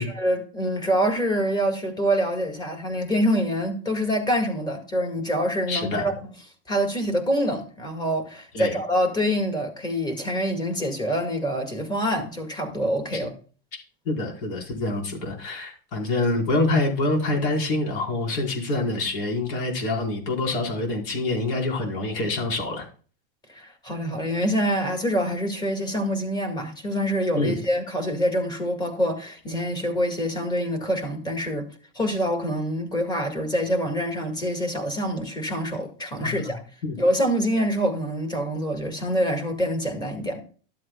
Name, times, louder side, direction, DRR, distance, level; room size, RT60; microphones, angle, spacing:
voice 1, 0.0-6.1 6.7-13.3 23.5-31.7 32.0-36.6 37.0-40.4, equal, 15° left, 1.9 m, -25 dB
voice 2, 5.7-6.0 8.5-8.7 13.1-13.2 14.0-22.9 27.3-27.6 36.2-36.5 36.8-37.0, left 2 dB, 65° left, 4.5 m, -26 dB
13.0 x 7.7 x 2.3 m
supercardioid pair, 155°, 29 cm